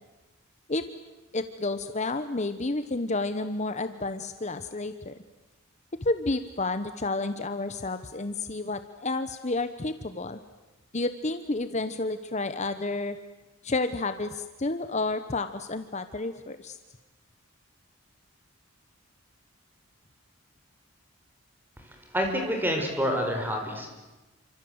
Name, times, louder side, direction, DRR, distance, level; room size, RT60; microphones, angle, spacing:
voice 1, 1.3-5.1 6.0-10.4 10.9-13.2 13.6-16.8, left 2 dB, 35° left, 10 dB, 1.0 m, -30 dB
voice 2, 22.1-23.9, equal, 10° right, 3 dB, 5.3 m, -27 dB
29.0 x 25.5 x 8.0 m, 1.1 s
head